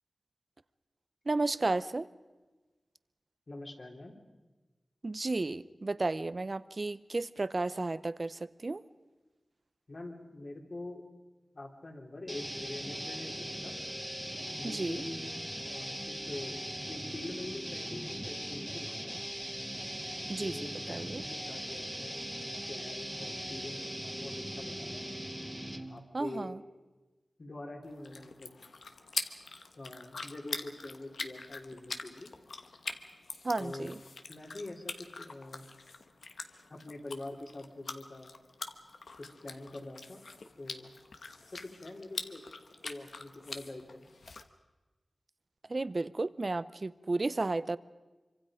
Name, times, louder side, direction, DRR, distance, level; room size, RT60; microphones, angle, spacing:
voice 1, 1.3-2.1 5.0-8.8 14.6-15.0 20.3-21.2 26.1-26.6 33.4-34.0 45.7-47.8, right 2 dB, 45° right, 16 dB, 0.7 m, -33 dB
voice 2, 3.5-4.2 9.9-11.0 11.5-13.7 14.6-15.2 15.6-16.6 16.9-19.2 20.4-25.1 25.9-26.5 27.4-28.5 29.8-32.3 33.6-33.9 34.3-35.7 36.7-38.3 39.4-40.2 40.6-40.9 41.5-44.1, left 2 dB, 55° left, 1 dB, 3.5 m, -45 dB
sound 1, 12.3-26.0, equal, 5° right, 1.9 m, -40 dB
sound 2, 27.8-44.4, left 4 dB, 85° left, 1.2 m, -44 dB
26.0 x 24.5 x 5.1 m, 1.2 s
wide cardioid pair, 60°, 0 cm